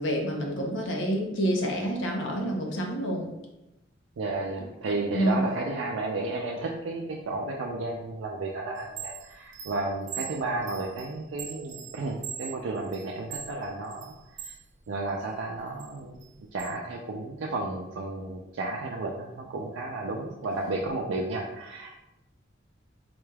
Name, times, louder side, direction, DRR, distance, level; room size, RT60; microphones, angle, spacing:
voice 1, 0.0-3.3 5.1-5.4, equal, 70° left, 1 dB, 0.7 m, -28 dB
voice 2, 4.2-14.1 14.4-14.5 14.9-16.2 16.5-21.9, right 2 dB, 85° right, -2 dB, 0.4 m, -32 dB
Chime, 8.8-14.6 15.0-16.7, right 9 dB, 40° right, 0.7 m, -41 dB
3.9 x 2.3 x 3.2 m, 0.94 s
head